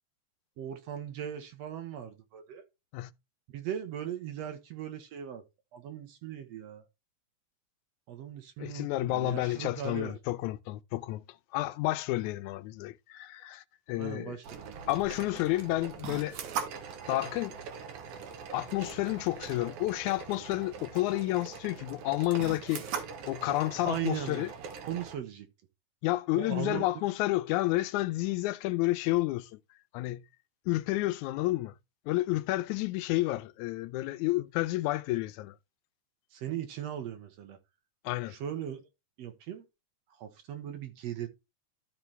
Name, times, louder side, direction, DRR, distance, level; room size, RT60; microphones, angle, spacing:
voice 1, 0.6-2.6 3.5-5.4 5.7-6.8 8.1-10.2 14.0-15.0 23.8-24.5 24.8-25.5 26.4-26.8 36.3-37.6 38.3-38.8 39.2-39.7 40.2-41.3, right 9 dB, 65° right, 2.1 m, -38 dB
voice 2, 8.6-11.2 11.5-14.4 14.9-16.4 17.1-17.6 18.5-24.5 26.0-29.6 29.9-30.2 30.7-31.8 32.1-35.6 38.0-38.4, left 18 dB, 85° left, 2.0 m, -30 dB
sound 1, 14.4-25.2, right 6 dB, 85° right, 2.6 m, -41 dB
13.0 x 4.5 x 3.2 m
omnidirectional pair, 3.4 m